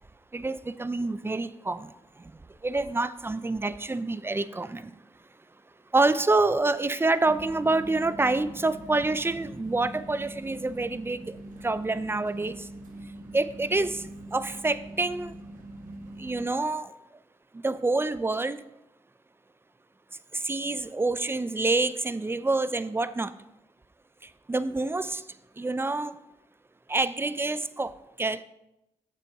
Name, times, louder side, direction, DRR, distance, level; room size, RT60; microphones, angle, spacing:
voice 1, 0.3-1.9 2.2-2.3 2.6-4.9 5.9-12.7 13.3-15.4 16.2-16.9 17.5-18.6 20.3-23.3 24.2-25.2 25.6-26.1 26.9-28.4, right 2 dB, 15° right, 15 dB, 0.5 m, -27 dB
sound 1, 7.2-16.4, right 1 dB, 90° right, 1.0 m, -43 dB
6.9 x 6.1 x 4.7 m, 0.90 s
supercardioid pair, 45°, 13 cm